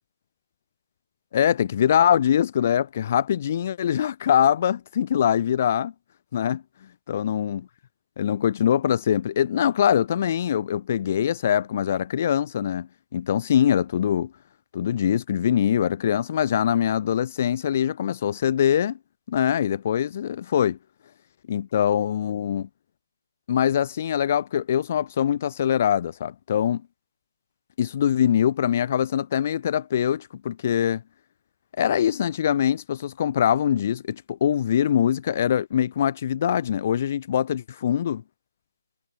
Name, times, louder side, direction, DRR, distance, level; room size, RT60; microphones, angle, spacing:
voice 1, 1.3-5.9 6.3-6.6 7.1-7.7 8.2-14.3 14.7-19.0 19.3-20.8 21.5-22.7 23.5-26.8 27.8-31.0 31.8-38.2, left 9 dB, 30° left, 0.7 m, -23 dB
figure-of-eight pair, 160°, 2 cm